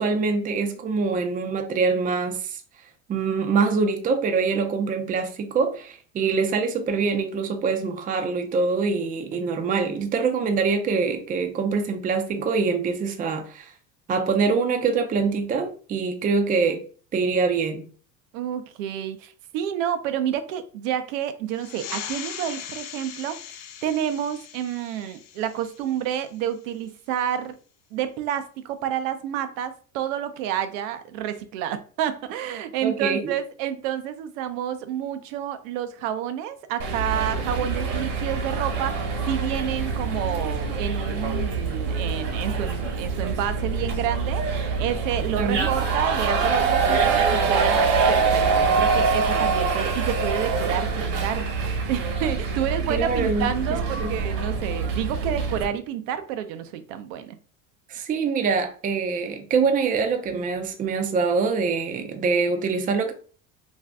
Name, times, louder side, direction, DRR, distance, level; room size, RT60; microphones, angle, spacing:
voice 1, 0.0-2.6 3.1-13.7 14.1-16.8 17.1-17.8 32.8-33.4 45.3-45.7 52.9-54.1 57.9-63.1, right 4 dB, 20° right, 0.4 m, -24 dB
voice 2, 18.3-23.4 23.8-27.5 27.9-57.4, right 10 dB, 80° right, 0.6 m, -29 dB
sound 1, 21.5-26.6, left 9 dB, 65° left, 0.5 m, -39 dB
sound 2, 36.8-55.7, right 4 dB, 65° right, 1.0 m, -25 dB
2.6 x 2.3 x 3.3 m
supercardioid pair, 100°, 39 cm